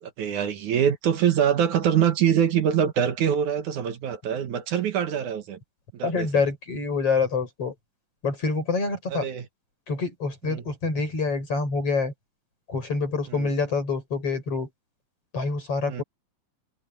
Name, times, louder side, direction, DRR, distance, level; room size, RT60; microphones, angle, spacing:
voice 1, 0.0-5.6 5.9-6.4 9.1-9.5 10.4-10.6 13.3-13.5 15.9-16.0, right 9 dB, 70° right, 2.9 m, -24 dB
voice 2, 6.0-7.7 8.2-9.3 9.9-12.1 12.7-14.7 15.3-16.0, left 4 dB, 45° left, 7.4 m, -26 dB
omnidirectional pair, 3.6 m